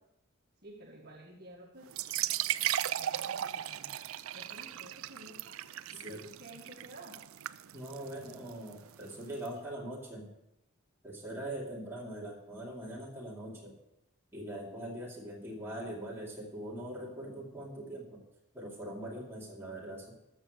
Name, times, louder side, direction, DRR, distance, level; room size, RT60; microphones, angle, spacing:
voice 1, 0.6-2.3 2.6-2.7 3.0-4.1 4.3-5.6 5.9-7.2 15.4-15.6, right 1 dB, 45° right, -1 dB, 1.8 m, -52 dB
sound 1, 1.9-9.5, right 12 dB, 85° right, 0.4 m, -37 dB
voice 2, 7.7-10.3 11.0-13.7 14.3-18.2 18.5-20.1, right 1 dB, 10° right, -4 dB, 2.6 m, -42 dB
13.5 x 7.0 x 6.6 m, 0.86 s
head